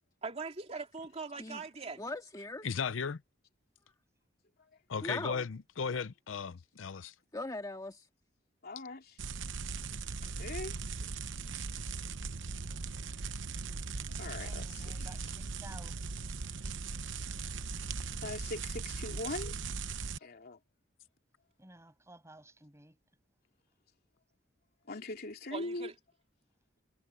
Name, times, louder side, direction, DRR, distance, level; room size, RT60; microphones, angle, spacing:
voice 1, 0.2-2.0 25.5-25.9, right 4 dB, 35° right, 2.4 m, -41 dB
voice 2, 2.0-2.7 5.0-5.5 7.3-8.1, left 2 dB, 20° left, 2.0 m, -40 dB
voice 3, 2.6-3.2 4.9-7.1, left 5 dB, 85° left, 0.6 m, -36 dB
voice 4, 8.6-9.2 10.4-10.7 14.2-15.3 18.2-19.6 20.2-20.6 24.9-25.9, left 2 dB, 55° left, 3.2 m, -41 dB
sound 1, 9.2-20.2, right 4 dB, 70° right, 0.9 m, -39 dB
voice 5, 14.4-15.9 21.6-23.0, right 1 dB, 15° right, 7.3 m, -54 dB
head